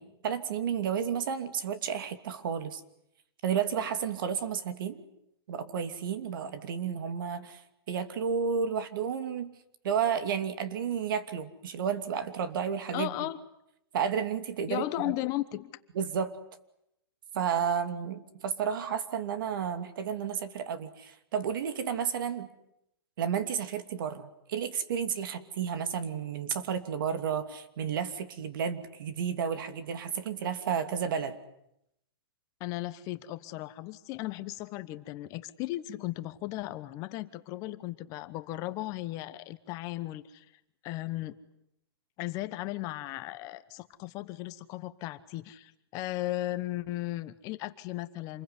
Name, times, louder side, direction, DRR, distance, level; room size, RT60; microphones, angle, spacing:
voice 1, 0.0-2.8 3.4-5.0 5.5-7.6 7.9-9.5 9.8-13.3 13.9-15.1 15.9-16.4 17.3-22.5 23.2-31.3, right 7 dB, 55° right, 10 dB, 2.8 m, -32 dB
voice 2, 12.9-13.4 14.7-15.7 32.6-40.5 40.8-41.4 42.2-48.4, left 16 dB, 25° left, 12 dB, 1.1 m, -36 dB
27.5 x 22.0 x 9.8 m, 0.80 s
hypercardioid pair, 160°, 13 cm